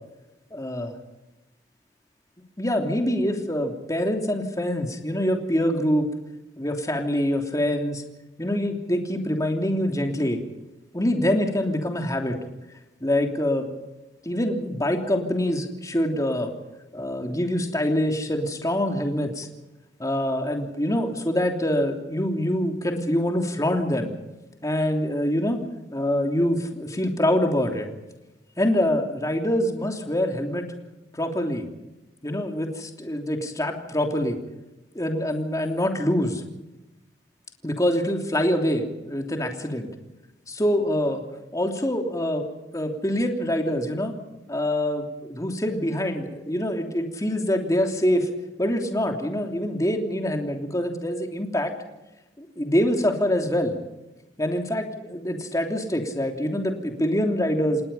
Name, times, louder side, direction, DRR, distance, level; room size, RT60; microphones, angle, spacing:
voice 1, 0.5-0.9 2.6-6.1 6.6-8.0 8.4-10.4 10.9-12.4 13.0-13.7 14.2-16.5 16.9-19.5 20.0-24.1 24.6-25.6 25.9-27.9 28.6-30.6 31.1-31.6 32.2-34.4 34.9-36.4 37.6-39.9 40.5-41.2 41.5-42.4 42.7-44.1 44.5-48.3 48.6-51.7 52.4-53.7 54.4-57.8, left 1 dB, 20° left, 3 dB, 3.1 m, -25 dB
28.5 x 19.0 x 5.7 m, 0.99 s
head